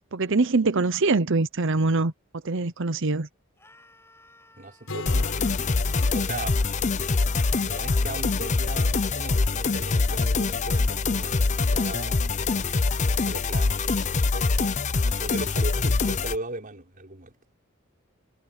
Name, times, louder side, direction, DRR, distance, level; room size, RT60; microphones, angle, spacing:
voice 1, 0.1-2.1 2.4-3.3, right 3 dB, 65° right, 0.9 m, -23 dB
Screaming, 3.6-9.5, left 2 dB, 10° left, 8.0 m, -57 dB
voice 2, 4.5-5.4 6.0-7.1 7.6-14.7 15.2-17.3, right 2 dB, 40° right, 6.1 m, -38 dB
Acoustic guitar, 4.9-8.6, left 2 dB, 70° left, 5.0 m, -42 dB
sound 1, 5.1-16.4, left 3 dB, 35° left, 0.6 m, -24 dB
head